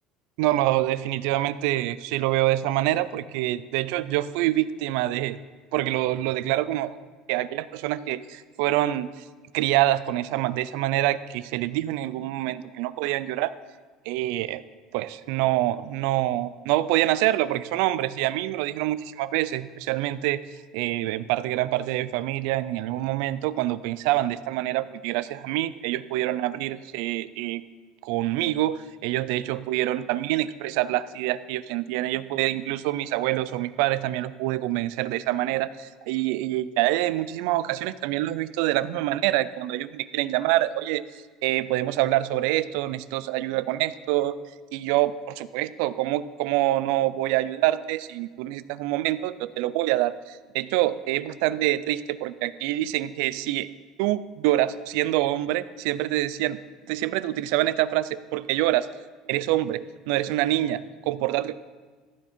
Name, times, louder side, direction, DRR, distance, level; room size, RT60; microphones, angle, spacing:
voice 1, 0.4-5.4 5.7-7.0 7.3-9.2 9.5-13.5 14.1-14.6 14.9-20.4 20.7-27.6 28.0-41.0 41.4-44.4 44.7-53.7 54.0-56.6 56.9-58.9 59.3-61.5, right 15 dB, 80° right, 16 dB, 0.4 m, -26 dB
14.5 x 7.2 x 4.4 m, 1.4 s
cardioid pair, 150°, 0 cm